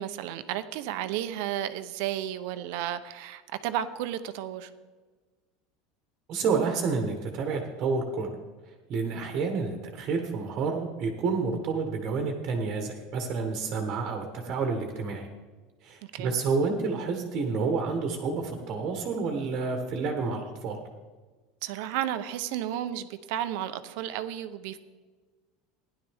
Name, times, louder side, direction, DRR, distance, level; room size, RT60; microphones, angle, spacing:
voice 1, 0.0-4.7 16.1-16.4 21.6-24.8, right 11 dB, 55° right, 11 dB, 0.7 m, -33 dB
voice 2, 6.3-8.3 8.9-15.3 15.8-20.8, right 4 dB, 35° right, 3 dB, 1.3 m, -29 dB
16.0 x 11.0 x 3.6 m, 1.4 s
supercardioid pair, 170°, 0 cm